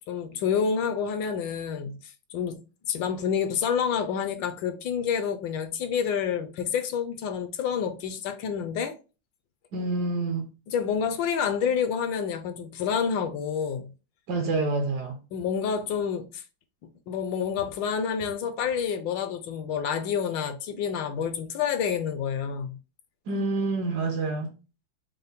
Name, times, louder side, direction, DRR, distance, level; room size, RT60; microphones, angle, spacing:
voice 1, 0.1-2.6 2.9-8.9 10.7-13.9 15.3-16.4 17.1-22.8, left 7 dB, 75° left, 1.2 m, -28 dB
voice 2, 9.7-10.5 14.3-15.2 23.3-24.5, right 3 dB, 65° right, 1.0 m, -27 dB
5.4 x 2.1 x 3.4 m
omnidirectional pair, 2.2 m